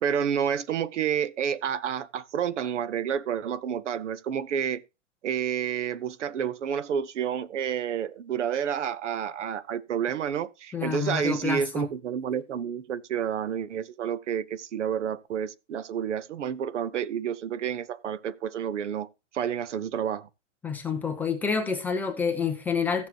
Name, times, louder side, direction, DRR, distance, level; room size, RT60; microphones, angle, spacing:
voice 1, 0.0-4.8 5.2-19.1 19.3-20.3, right 8 dB, 75° right, 1.1 m, -29 dB
voice 2, 10.7-11.9 20.6-23.1, left 6 dB, 5° left, 0.6 m, -28 dB
16.0 x 7.1 x 2.9 m
hypercardioid pair, 160°, 36 cm